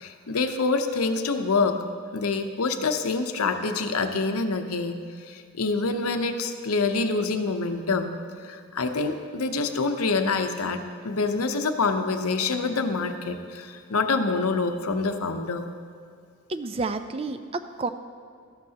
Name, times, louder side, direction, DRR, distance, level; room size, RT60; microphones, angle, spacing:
voice 1, 0.0-1.8 2.1-5.0 5.3-8.1 8.4-15.7, left 4 dB, 90° left, 7 dB, 0.8 m, -26 dB
voice 2, 16.5-17.9, right 3 dB, 25° right, 10 dB, 0.4 m, -30 dB
13.5 x 12.0 x 2.9 m, 2.3 s
head